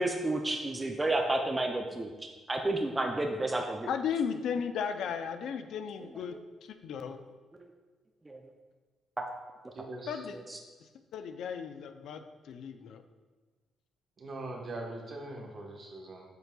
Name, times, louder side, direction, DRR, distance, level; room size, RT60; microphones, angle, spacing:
voice 1, 0.0-2.1 2.5-3.9 6.3-6.4 7.5-7.6 8.3-8.4 9.2-9.3 10.5-10.6, right 2 dB, 20° right, 3 dB, 0.5 m, -31 dB
voice 2, 3.9-6.4 6.8-7.2 10.1-10.4 11.1-13.0, left 7 dB, 75° left, 8 dB, 0.4 m, -35 dB
voice 3, 9.7-10.2 14.2-16.2, right 2 dB, 45° right, 1 dB, 1.2 m, -41 dB
7.7 x 5.5 x 2.3 m, 1.4 s
cardioid pair, 90°, 0 cm